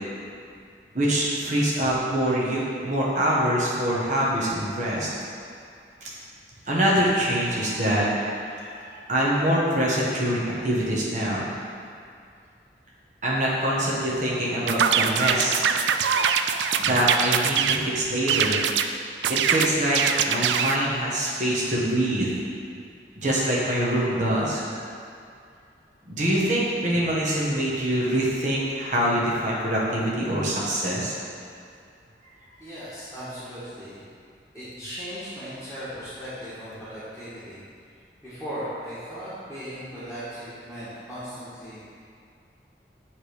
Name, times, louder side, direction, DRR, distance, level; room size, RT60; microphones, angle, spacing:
voice 1, 0.9-5.1 6.7-11.5 13.2-15.6 16.8-18.6 19.3-20.0 20.3-22.3 23.2-24.9 26.0-31.2, right 1 dB, 45° right, -6 dB, 1.2 m, -24 dB
sound 1, 14.7-17.8 18.3-18.9 19.2-20.8, right 7 dB, 90° right, 0.3 m, -23 dB
voice 2, 32.6-34.0 34.5-37.6 38.2-41.8, equal, 5° right, -14 dB, 1.6 m, -37 dB
8.8 x 3.4 x 4.9 m, 2.4 s
head